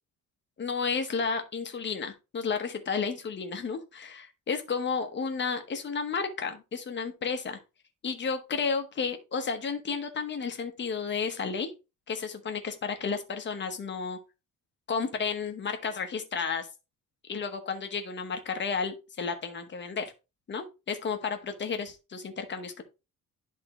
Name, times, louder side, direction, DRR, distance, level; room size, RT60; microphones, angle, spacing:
voice 1, 0.6-7.6 8.0-11.7 12.1-14.2 14.9-16.7 17.3-20.1 20.5-22.8, left 5 dB, 35° left, 6 dB, 1.1 m, -32 dB
11.0 x 3.7 x 3.0 m, 0.27 s
cardioid pair, 170°, 33 cm